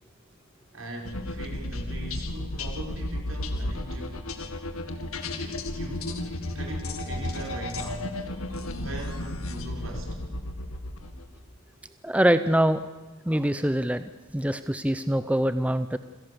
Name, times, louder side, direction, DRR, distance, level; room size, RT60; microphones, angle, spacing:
voice 1, 0.7-4.2 5.3-8.1 8.7-10.2, right 1 dB, 70° right, 1 dB, 5.2 m, -40 dB
sound 1, 1.1-11.2, left 1 dB, 80° left, 2.1 m, -33 dB
voice 2, 12.0-12.8 13.3-14.0 14.3-16.0, right 1 dB, 5° right, 11 dB, 0.6 m, -24 dB
27.0 x 16.5 x 6.9 m, 1.2 s
head